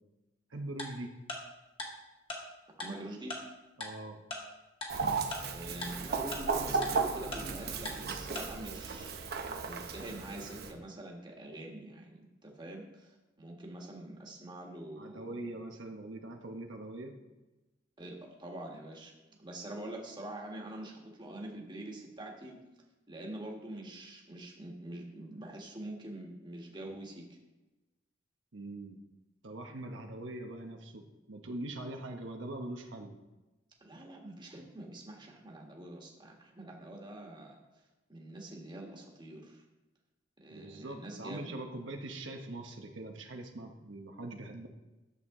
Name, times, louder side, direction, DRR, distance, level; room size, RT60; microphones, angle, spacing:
voice 1, 0.5-1.1 3.8-4.2 15.0-17.1 28.5-29.0 29.4-31.0 31.3-33.1 40.5-44.7, right 1 dB, 85° right, 3 dB, 0.9 m, -42 dB
Tick-tock, 0.8-0.9 1.3-1.4 1.8-1.9 2.3-2.4 2.8-2.9 3.3-3.4 3.8-3.9 4.3-4.4 4.8-4.9 5.3-5.4 5.8-5.9 6.3-6.4 6.8-6.9 7.3-7.4 7.9-8.0 8.4-8.5, left 2 dB, 30° left, 1.8 m, -38 dB
voice 2, 2.8-3.4 5.5-15.4 18.0-19.1 19.4-22.6 23.1-27.2 33.8-37.6 38.1-39.6 40.4-41.5, right 1 dB, 25° right, 0 dB, 1.5 m, -45 dB
Chicken rooster, 4.9-10.7, right 4 dB, 55° right, 0.8 m, -35 dB
10.5 x 7.2 x 3.7 m, 1.1 s
head